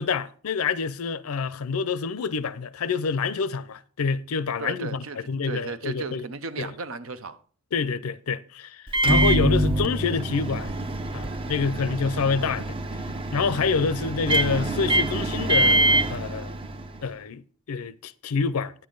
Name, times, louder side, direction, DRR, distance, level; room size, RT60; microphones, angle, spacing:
voice 1, 0.0-6.3 6.6-6.7 7.7-10.7 11.1-12.7 13.3-16.5 17.0-17.4 17.7-18.7, left 5 dB, 80° left, 0.5 m, -27 dB
voice 2, 4.6-7.4, right 4 dB, 65° right, 0.7 m, -35 dB
Microwave oven, 8.9-17.0, right 1 dB, 25° right, 0.6 m, -25 dB
10.0 x 8.7 x 3.8 m
head